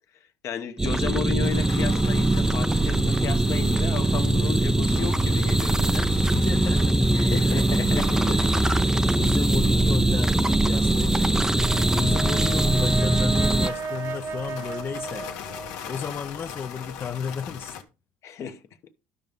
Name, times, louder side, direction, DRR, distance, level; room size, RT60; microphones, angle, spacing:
voice 1, 0.4-6.1 7.1-8.1 8.8-9.0 18.2-18.6, left 8 dB, 50° left, 1.1 m, -34 dB
sound 1, 0.8-13.7, right 2 dB, 10° right, 0.5 m, -22 dB
sound 2, 1.4-17.8, left 7 dB, 75° left, 1.6 m, -40 dB
voice 2, 6.3-8.4 8.9-10.3 10.6-15.3 15.9-17.8, left 6 dB, 35° left, 0.6 m, -33 dB
Brass instrument, 11.6-16.0, right 5 dB, 40° right, 1.1 m, -35 dB
12.5 x 5.3 x 3.7 m
supercardioid pair, 95°, 6 cm